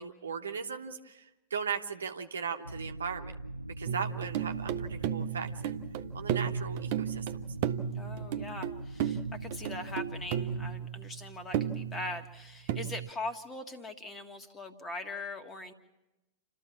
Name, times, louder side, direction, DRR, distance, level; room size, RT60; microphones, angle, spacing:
voice 1, 0.0-3.3 3.8-5.8 6.1-7.3, right 6 dB, 70° right, 7 dB, 1.0 m, -37 dB
sound 1, 2.6-10.8, right 1 dB, 90° left, 0.7 m, -42 dB
sound 2, 3.9-13.1, right 10 dB, 50° right, 0.8 m, -35 dB
voice 2, 7.9-15.7, left 2 dB, 20° left, 7 dB, 1.8 m, -41 dB
29.0 x 13.5 x 7.2 m, 1.0 s
figure-of-eight pair, 90°, 0 cm